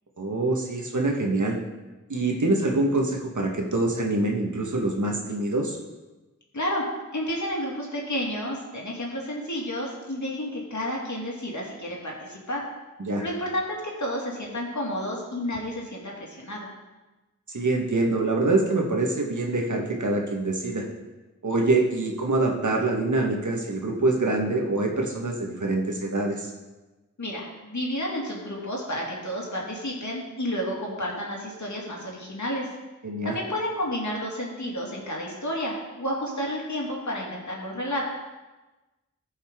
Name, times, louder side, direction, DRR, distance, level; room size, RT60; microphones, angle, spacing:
voice 1, 0.2-1.6 2.1-5.8 13.0-13.2 17.5-20.8 21.4-26.5 33.0-33.3, right 2 dB, 75° right, 1 dB, 1.5 m, -25 dB
voice 2, 6.5-12.7 13.2-16.7 27.2-32.7 33.2-38.1, equal, 70° left, -2 dB, 2.4 m, -31 dB
15.0 x 5.5 x 3.7 m, 1.1 s
wide cardioid pair, 45°, 30 cm